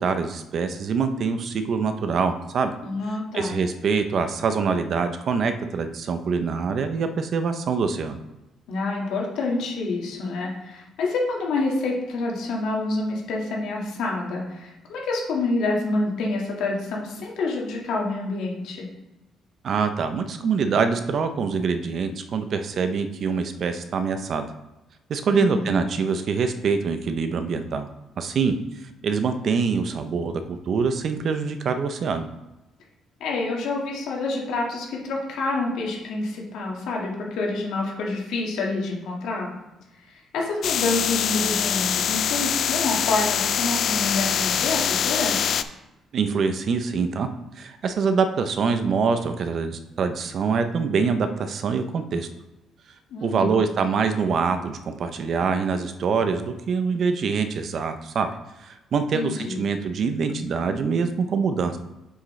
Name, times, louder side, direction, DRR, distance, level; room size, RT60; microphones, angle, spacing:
voice 1, 0.0-2.8 3.3-8.2 19.6-24.4 25.1-27.9 28.2-28.6 29.0-32.2 46.1-47.3 47.6-52.3 53.2-58.3 58.6-61.8, right 5 dB, 50° right, 8 dB, 0.6 m, -24 dB
voice 2, 2.8-3.6 8.7-18.9 25.3-25.8 33.2-39.5 40.1-45.4 53.1-53.6 59.1-59.7, left 3 dB, 80° left, -2 dB, 1.8 m, -27 dB
sound 1, 40.6-45.6, left 8 dB, 55° left, 0.3 m, -24 dB
7.4 x 6.4 x 3.2 m, 0.99 s
cardioid pair, 130°, 0 cm